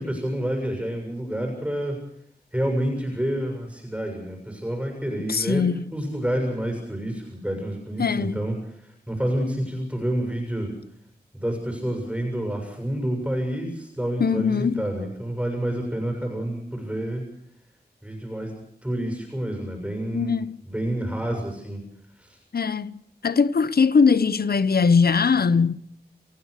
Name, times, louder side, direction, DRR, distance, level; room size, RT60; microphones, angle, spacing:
voice 1, 0.0-2.0 2.5-10.7 11.3-17.3 18.0-21.8 22.2-22.4, right 1 dB, 5° right, 7.0 m, -29 dB
voice 2, 5.3-5.8 8.0-8.4 14.2-14.8 20.1-20.6 22.5-25.7, left 5 dB, 70° left, 1.0 m, -21 dB
28.5 x 16.5 x 6.6 m
wide cardioid pair, 95°, 17 cm